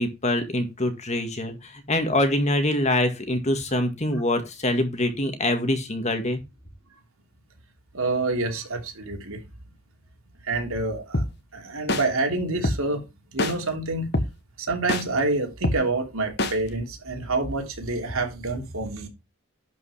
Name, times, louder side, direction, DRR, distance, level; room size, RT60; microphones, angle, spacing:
voice 1, 0.0-6.4, left 1 dB, 30° left, 1.9 m, -24 dB
voice 2, 7.9-9.4 10.4-11.2 11.5-13.0 13.3-14.1 14.6-19.1, right 2 dB, 75° right, 3.1 m, -27 dB
sound 1, 11.1-11.3 11.9-12.0 12.6-12.8 13.4-13.5 14.1-14.3 14.9-15.0 15.6-15.8 16.4-16.5, left 1 dB, 50° left, 1.4 m, -23 dB
11.5 x 5.4 x 5.0 m
head